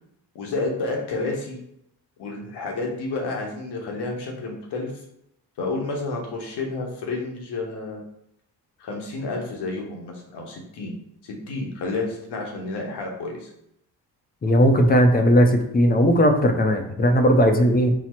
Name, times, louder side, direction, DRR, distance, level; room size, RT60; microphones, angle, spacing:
voice 1, 0.3-1.6 2.2-4.9 5.6-8.0 8.8-10.9 11.2-13.5, left 3 dB, 80° left, 0 dB, 1.1 m, -30 dB
voice 2, 14.4-17.9, equal, 25° left, 5 dB, 0.5 m, -17 dB
4.2 x 2.0 x 4.3 m, 0.76 s
cardioid pair, 85°, 40 cm